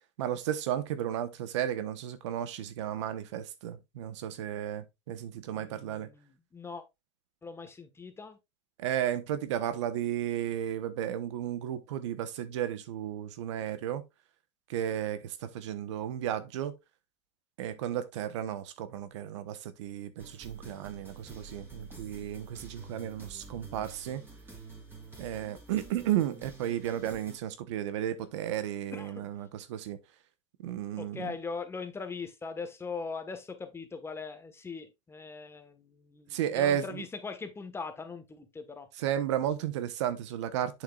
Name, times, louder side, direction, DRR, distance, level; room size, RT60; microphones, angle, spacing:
voice 1, 0.2-6.1 8.8-14.0 14.7-16.7 17.6-24.2 25.2-30.0 30.6-31.3 36.3-37.0 39.0-40.8, right 10 dB, 85° right, 1.1 m, -33 dB
voice 2, 5.5-6.8 7.4-8.4 28.9-29.3 31.0-38.9, left 4 dB, 15° left, 1.4 m, -41 dB
sound 1, 20.2-27.4, right 3 dB, 15° right, 3.5 m, -49 dB
8.0 x 6.7 x 2.4 m
supercardioid pair, 115°, 15 cm